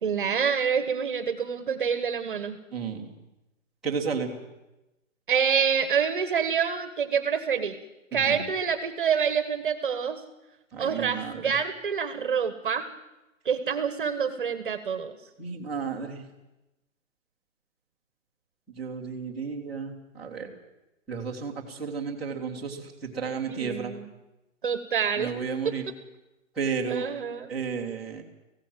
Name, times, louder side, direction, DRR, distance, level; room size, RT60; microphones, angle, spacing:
voice 1, 0.0-2.6 5.3-7.8 8.1-10.2 10.8-12.8 13.4-15.1 23.5-24.1 24.6-25.3 25.6-25.7 26.9-27.5, right 7 dB, 40° right, 10 dB, 1.5 m, -27 dB
voice 2, 2.7-3.1 3.8-4.3 8.1-8.4 10.7-11.5 15.4-16.2 18.7-20.5 21.1-23.9 25.2-25.8 26.5-27.0 27.5-28.2, right 5 dB, ahead, -10 dB, 1.6 m, -32 dB
18.5 x 16.0 x 9.2 m, 1.0 s
hypercardioid pair, 175°, 40 cm